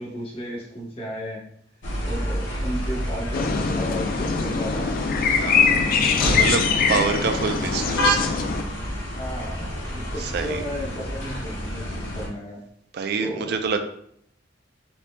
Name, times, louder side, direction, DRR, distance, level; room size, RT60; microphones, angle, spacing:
voice 1, 0.0-1.4 2.0-5.0 6.9-7.3 9.1-12.6 13.2-13.6, equal, 30° left, -4 dB, 1.0 m, -34 dB
sound 1, 1.8-12.3, equal, 70° left, 0.8 m, -29 dB
sound 2, 3.3-8.6, left 5 dB, 50° left, 0.3 m, -23 dB
voice 2, 5.4-5.9 6.3-8.2 10.2-10.6 12.9-13.8, right 5 dB, 55° right, 7 dB, 0.4 m, -26 dB
4.3 x 2.7 x 2.2 m, 0.69 s
head